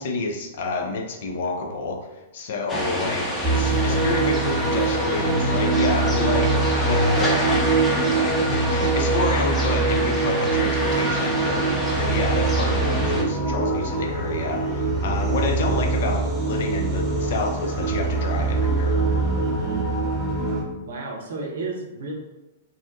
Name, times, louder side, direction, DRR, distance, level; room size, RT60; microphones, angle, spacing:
voice 1, 0.0-2.1 2.3-19.0, left 3 dB, 55° left, 3 dB, 0.4 m, -29 dB
sound 1, 2.7-13.2, equal, 10° left, 0.7 m, -28 dB
sound 2, 3.4-20.6, right 3 dB, 15° right, 0.9 m, -23 dB
voice 2, 3.5-4.5 19.4-20.0 20.8-22.2, right 3 dB, 65° right, 0 dB, 0.6 m, -34 dB
2.6 x 2.1 x 2.5 m, 1.0 s
figure-of-eight pair, 105°, 0 cm